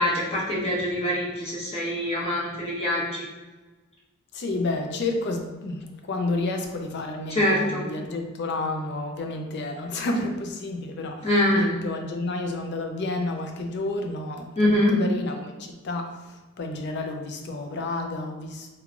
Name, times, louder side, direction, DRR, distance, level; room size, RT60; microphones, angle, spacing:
voice 1, 0.0-3.3 7.3-7.8 11.2-11.7 14.6-15.0, left 1 dB, 30° left, -6 dB, 1.1 m, -24 dB
voice 2, 4.3-18.7, left 2 dB, 50° left, 4 dB, 0.5 m, -30 dB
3.2 x 2.3 x 3.6 m, 1.2 s
head